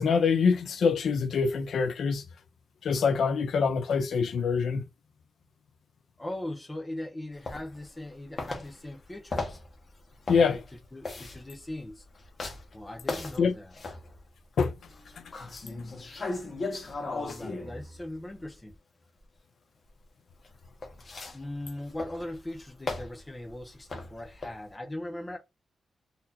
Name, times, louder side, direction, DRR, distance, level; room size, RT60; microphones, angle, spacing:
voice 1, 0.0-2.2 2.8-4.9 10.3-10.6 13.4-13.5 14.6-14.7, left 5 dB, 70° left, 0.6 m, -25 dB
voice 2, 6.2-9.6 10.3-10.6 10.9-12.0 12.7-13.7 17.1-18.7 21.3-25.4, left 1 dB, 15° left, 0.7 m, -39 dB
sound 1, 7.5-8.1 8.4-14.3 14.8-18.7 20.4-24.7, left 3 dB, 35° left, 1.0 m, -38 dB
4.0 x 2.7 x 2.8 m
wide cardioid pair, 145°, 0 cm